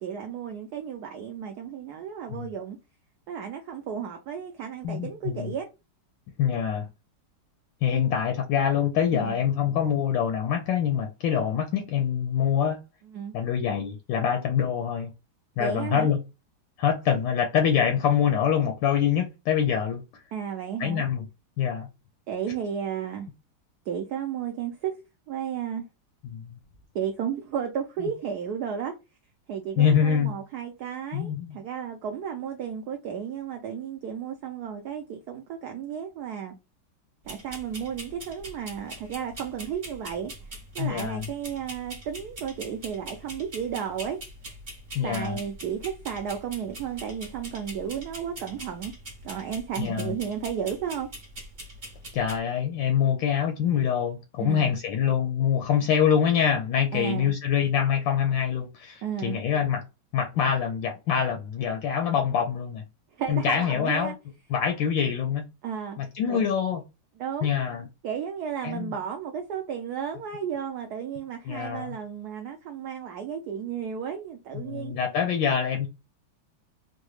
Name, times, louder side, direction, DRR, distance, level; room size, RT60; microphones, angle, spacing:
voice 1, 0.0-2.8 3.3-5.7 7.9-8.0 9.1-9.3 13.1-13.3 15.6-16.1 20.3-21.0 22.3-23.3 23.9-24.9 25.3-25.8 26.9-28.9 29.5-36.5 37.2-40.3 40.7-44.2 45.0-48.9 49.2-51.1 54.4-54.7 56.9-57.3 59.0-59.4 63.2-64.1 65.6-66.0 66.3-66.5 67.2-67.5 68.0-74.9, right 8 dB, 75° right, 0.9 m, -33 dB
voice 2, 4.8-5.5 6.4-6.9 7.8-12.8 13.3-15.1 15.6-16.2 16.8-20.2 20.8-21.2 21.6-21.9 26.2-26.5 29.8-30.3 31.1-31.6 40.8-41.3 44.9-45.4 49.8-50.2 52.1-59.8 60.1-62.8 63.3-64.2 64.5-65.4 66.0-66.8 67.4-67.9 68.6-69.0 71.5-72.0 74.5-75.9, left 8 dB, 75° left, 1.2 m, -25 dB
sound 1, 37.3-52.4, right 1 dB, 40° right, 0.7 m, -43 dB
3.9 x 2.1 x 3.0 m
omnidirectional pair, 2.3 m